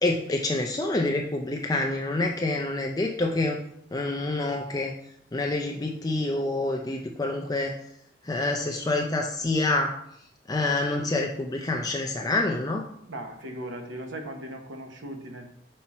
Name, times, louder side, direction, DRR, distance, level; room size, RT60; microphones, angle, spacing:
voice 1, 0.0-3.6 3.9-4.9 5.3-7.7 8.2-9.9 10.5-12.8, left 2 dB, 20° left, 2 dB, 0.4 m, -27 dB
voice 2, 13.1-15.5, right 1 dB, 80° right, 4 dB, 1.0 m, -38 dB
5.7 x 4.4 x 4.2 m, 0.72 s
head